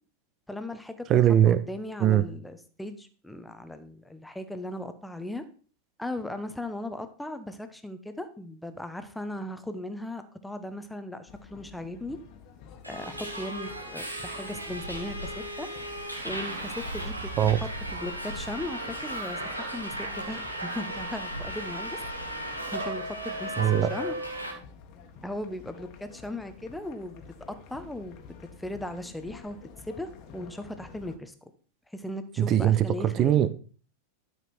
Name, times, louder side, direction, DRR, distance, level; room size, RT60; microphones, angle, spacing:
voice 1, 0.5-1.1 1.4-5.4 6.0-12.2 12.8-15.3 15.6-15.7 16.2-17.3 17.9-22.0 22.7-24.2 25.2-27.2 27.7-28.2 28.6-29.6 29.9-31.3 31.9-33.5, left 1 dB, 5° left, 9 dB, 1.1 m, -37 dB
voice 2, 1.1-1.6 2.0-2.2 17.4-17.6 23.6-23.9 32.4-33.5, right 11 dB, 30° right, 14 dB, 0.8 m, -21 dB
sound 1, 11.3-31.2, left 6 dB, 40° left, 1.6 m, -50 dB
Subway metro underground, 12.8-24.5, right 1 dB, 90° right, 1.8 m, -35 dB
12.5 x 6.1 x 4.5 m, 0.40 s
figure-of-eight pair, 90°, 0 cm